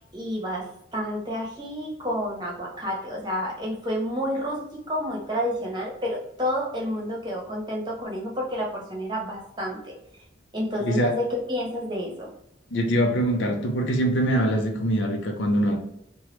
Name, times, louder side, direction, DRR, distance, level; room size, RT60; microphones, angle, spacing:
voice 1, 0.1-0.7 0.9-9.9 10.5-12.3, equal, 25° right, -3 dB, 0.9 m, -29 dB
voice 2, 10.8-11.1 12.7-15.8, right 1 dB, 80° left, 2 dB, 0.6 m, -23 dB
3.0 x 2.2 x 3.0 m, 0.75 s
head